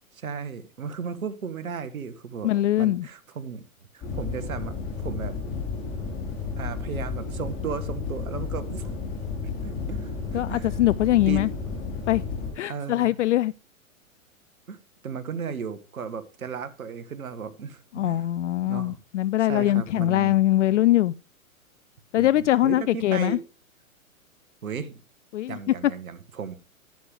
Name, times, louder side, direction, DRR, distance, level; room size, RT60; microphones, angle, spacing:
voice 1, 0.1-2.5 2.8-3.6 3.9-4.7 5.0-5.4 6.6-8.9 9.4-10.8 11.3-11.5 12.7-13.1 14.7-18.3 18.6-19.0 19.4-20.4 22.2-23.4 24.6-25.0 25.5-26.6, right 6 dB, 80° right, 1.5 m, -35 dB
voice 2, 2.4-3.1 10.3-11.5 12.1-12.2 12.6-13.5 17.9-21.1 22.1-23.4 25.3-25.6, left 14 dB, 60° left, 0.5 m, -22 dB
sound 1, 4.0-12.5, left 4 dB, 30° left, 4.7 m, -32 dB
11.0 x 10.5 x 3.4 m
hypercardioid pair, 120°, 41 cm